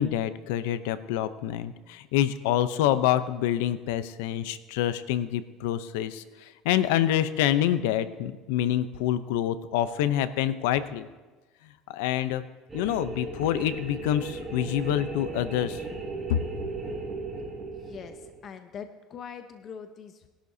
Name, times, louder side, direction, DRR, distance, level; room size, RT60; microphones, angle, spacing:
voice 1, 0.0-6.2 6.6-11.1 11.9-12.4 12.7-15.8 16.3-16.4, left 11 dB, 85° left, 13 dB, 0.7 m, -26 dB
sound 1, 12.7-18.4, right 3 dB, 20° right, 4.2 m, -36 dB
voice 2, 17.8-20.3, left 7 dB, 40° left, 7 dB, 0.8 m, -42 dB
20.5 x 11.5 x 2.8 m, 1.2 s
supercardioid pair, 125°, 0 cm